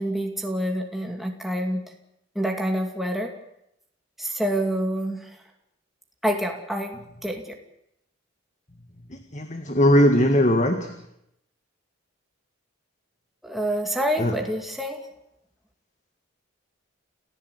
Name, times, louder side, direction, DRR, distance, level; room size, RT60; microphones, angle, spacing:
voice 1, 0.0-1.9 2.4-3.3 4.2-5.3 6.2-7.4 13.4-15.1, equal, ahead, 2 dB, 2.4 m, -27 dB
voice 2, 9.1-10.9 14.2-14.4, equal, 35° left, 6 dB, 1.9 m, -20 dB
29.0 x 15.5 x 8.3 m, 0.79 s
head